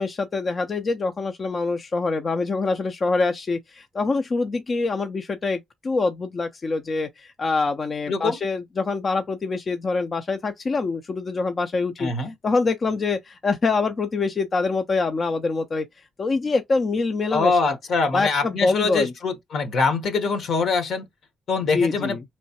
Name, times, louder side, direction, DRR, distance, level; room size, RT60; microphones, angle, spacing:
voice 1, 0.0-12.1 12.4-17.8 18.1-19.1 21.7-22.2, left 3 dB, 45° left, 0.5 m, -25 dB
voice 2, 8.1-8.4 12.0-12.3 17.3-21.0 21.5-22.2, left 4 dB, 70° left, 1.0 m, -23 dB
4.2 x 3.1 x 2.8 m
supercardioid pair, 60°, 0 cm